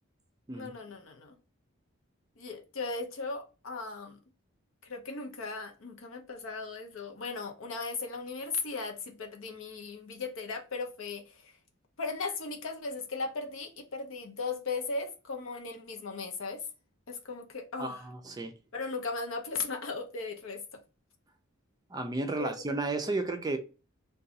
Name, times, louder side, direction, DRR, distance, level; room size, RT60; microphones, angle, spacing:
voice 1, 0.5-1.3 2.4-4.2 4.8-11.6 12.0-16.6 17.1-18.1 18.7-20.8 22.4-22.5, left 4 dB, 70° left, 0.6 m, -37 dB
voice 2, 17.8-18.5 21.9-23.6, right 2 dB, 20° right, 0.4 m, -33 dB
2.6 x 2.3 x 3.8 m
head